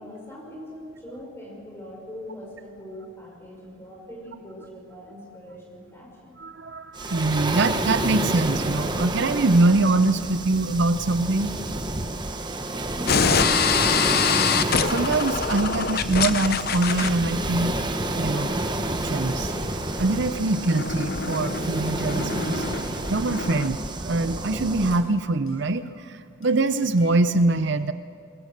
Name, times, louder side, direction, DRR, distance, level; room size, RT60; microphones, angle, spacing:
voice 1, 0.0-6.4 12.9-14.3, equal, 10° left, -2 dB, 5.6 m, -41 dB
voice 2, 6.4-11.5 14.9-17.8 18.2-18.5 19.0-19.5 20.0-22.7 23.1-27.9, right 2 dB, 60° right, 11 dB, 0.6 m, -23 dB
Waves surf, 6.9-25.0, right 1 dB, 20° right, 1.0 m, -29 dB
sound 1, 13.1-23.7, left 6 dB, 50° left, 0.8 m, -26 dB
sound 2, 24.9-25.9 26.4-27.2, left 3 dB, 85° left, 7.9 m, -54 dB
21.5 x 21.0 x 6.6 m, 2.2 s
head